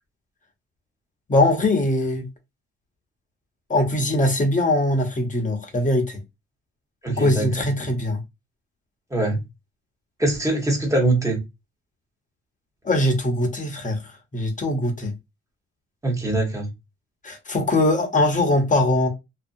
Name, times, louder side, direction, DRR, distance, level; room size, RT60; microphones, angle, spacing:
voice 1, 1.3-2.3 3.7-6.2 7.1-8.2 12.8-14.0 14.3-15.1 17.2-19.1, left 1 dB, 25° left, 0.9 m, -21 dB
voice 2, 7.0-7.5 9.1-9.4 10.2-11.4 16.0-16.7, right 2 dB, 10° right, 1.2 m, -22 dB
2.7 x 2.3 x 2.5 m
cardioid pair, 90°, 30 cm